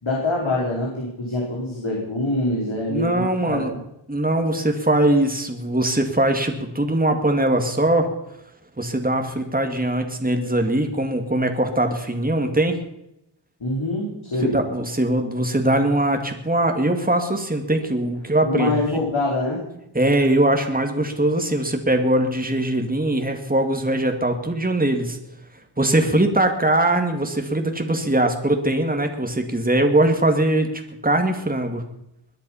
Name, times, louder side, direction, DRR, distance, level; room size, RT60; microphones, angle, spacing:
voice 1, 0.0-3.8 13.6-14.5 18.4-19.6, left 2 dB, 75° left, -3 dB, 4.3 m, -25 dB
voice 2, 2.9-3.7 4.1-8.1 8.8-12.8 14.4-19.0 19.9-25.2 25.8-31.8, right 1 dB, 20° right, 5 dB, 2.2 m, -21 dB
21.5 x 10.5 x 5.7 m, 0.84 s
wide cardioid pair, 55°, 47 cm